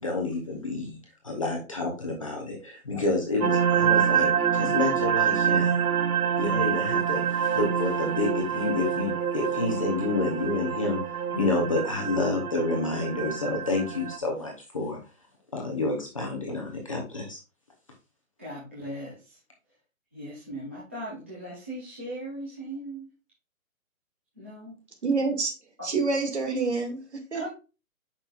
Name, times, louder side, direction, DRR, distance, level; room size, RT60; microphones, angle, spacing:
voice 1, 0.0-1.0 1.2-5.7 6.3-11.0 11.3-15.0 15.5-17.4, left 2 dB, 25° left, 0 dB, 1.0 m, -29 dB
sound 1, 3.4-14.2, right 8 dB, 85° right, 0.9 m, -26 dB
voice 2, 18.4-19.4 20.1-23.1 24.4-24.8 27.3-27.5, right 1 dB, 10° right, -10 dB, 0.8 m, -38 dB
voice 3, 25.0-25.5 25.8-27.0 27.3-27.5, right 4 dB, 50° right, 3 dB, 2.3 m, -26 dB
8.7 x 6.0 x 2.5 m, 0.31 s
hypercardioid pair, 180°, 42 cm